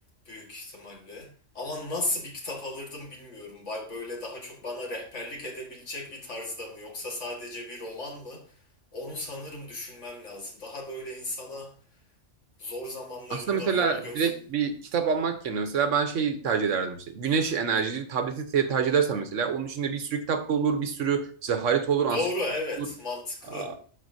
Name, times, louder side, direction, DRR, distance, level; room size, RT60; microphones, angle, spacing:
voice 1, 0.3-8.5 8.9-11.8 12.6-14.3 22.1-23.7, left 2 dB, 75° left, 2.2 m, -36 dB
voice 2, 13.3-22.2 22.8-22.9 23.5-23.8, right 6 dB, 85° right, 1.3 m, -26 dB
12.5 x 4.3 x 2.7 m
omnidirectional pair, 1.3 m